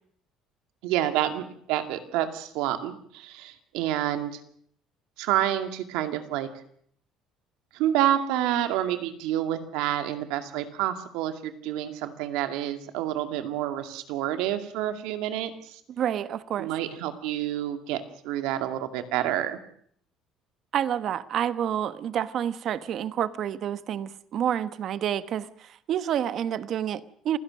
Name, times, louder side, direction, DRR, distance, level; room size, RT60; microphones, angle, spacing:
voice 1, 0.8-4.4 5.2-6.5 7.7-15.8 16.6-19.6, right 12 dB, 90° right, 2.3 m, -28 dB
voice 2, 15.9-16.7 20.7-27.4, right 10 dB, 50° right, 1.1 m, -29 dB
27.5 x 16.5 x 6.4 m
cardioid pair, 135°, 0 cm